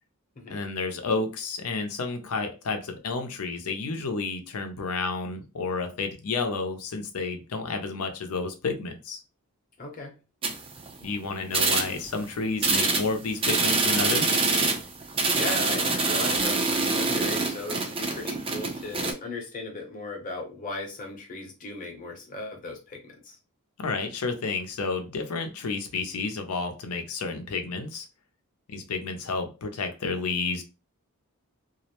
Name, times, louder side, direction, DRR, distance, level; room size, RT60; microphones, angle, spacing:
voice 1, 0.5-9.2 11.0-14.4 23.8-28.1 28.7-30.6, left 4 dB, 85° left, 5 dB, 0.6 m, -31 dB
voice 2, 9.8-10.2 15.3-23.4, left 2 dB, 35° left, 0 dB, 0.7 m, -37 dB
sound 1, 10.4-11.1 11.5-12.2 12.6-19.1, right 3 dB, 25° right, 0.5 m, -25 dB
2.5 x 2.0 x 2.8 m, 0.31 s
head